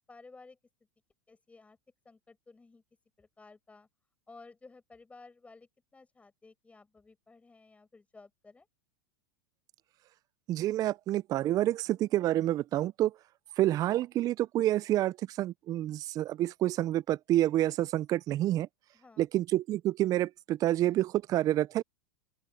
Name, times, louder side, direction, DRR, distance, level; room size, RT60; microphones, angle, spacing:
voice 1, 0.1-0.6 1.3-1.8 2.0-2.8 3.2-3.9 4.3-8.7 18.9-19.3, left 3 dB, 10° left, 4.9 m, -55 dB
voice 2, 10.5-13.1 13.6-18.7 19.2-21.8, right 14 dB, 35° right, 0.4 m, -28 dB
open air
hypercardioid pair, 110°, 11 cm